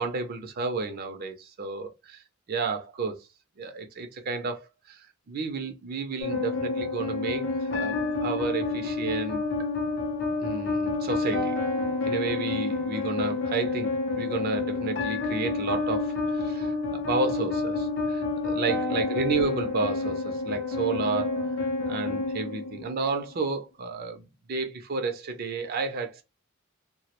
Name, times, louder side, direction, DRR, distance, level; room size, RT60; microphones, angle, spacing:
voice 1, 0.0-2.2 2.5-3.2 3.6-9.4 10.4-11.5 12.1-26.2, right 4 dB, 45° right, 0.4 m, -31 dB
sound 1, 6.2-23.2, left 3 dB, 55° left, 0.5 m, -29 dB
2.3 x 2.0 x 2.8 m
head